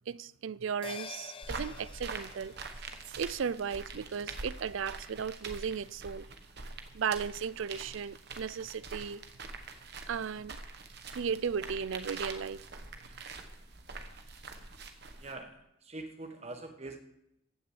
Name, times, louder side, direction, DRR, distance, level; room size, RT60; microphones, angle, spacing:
voice 1, 0.1-2.6 2.9-6.3 6.9-9.2 10.1-10.6 11.1-12.6, right 6 dB, 70° right, 0.4 m, -35 dB
sound 1, 0.8-5.5 5.9-6.0, left 5 dB, 25° left, 0.6 m, -50 dB
sound 2, 1.4-15.3, right 3 dB, 50° right, 1.2 m, -45 dB
voice 2, 15.2-17.0, right 2 dB, 30° right, 1.4 m, -44 dB
15.0 x 6.7 x 7.8 m
head